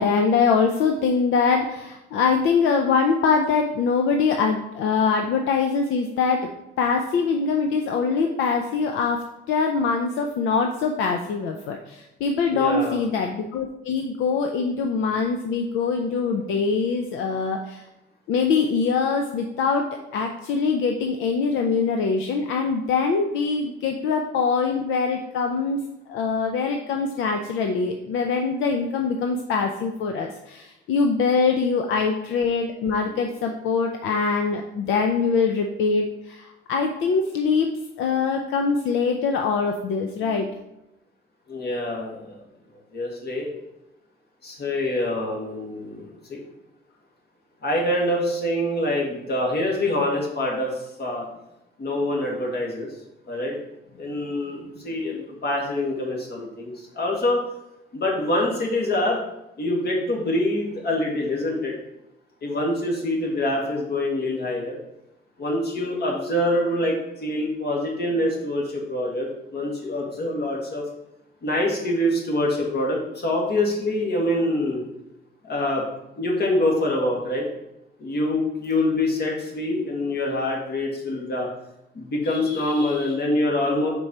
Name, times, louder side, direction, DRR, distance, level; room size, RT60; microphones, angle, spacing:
voice 1, 0.0-6.5 6.8-17.8 18.3-19.9 20.1-25.8 26.1-37.7 38.0-40.5 82.5-83.1, left 5 dB, 85° left, 4 dB, 0.5 m, -23 dB
voice 2, 12.5-13.1 41.5-42.4 42.9-43.5 44.4-46.4 47.6-50.7 51.0-51.3 51.8-52.9 53.3-53.6 54.0-57.4 57.9-59.2 59.6-61.7 62.4-64.8 65.4-70.8 71.4-74.8 75.4-75.8 76.2-77.4 78.0-81.5 81.9-83.9, left 1 dB, 55° left, -1 dB, 1.9 m, -25 dB
5.3 x 4.5 x 4.2 m, 0.89 s
cardioid pair, 90°, 20 cm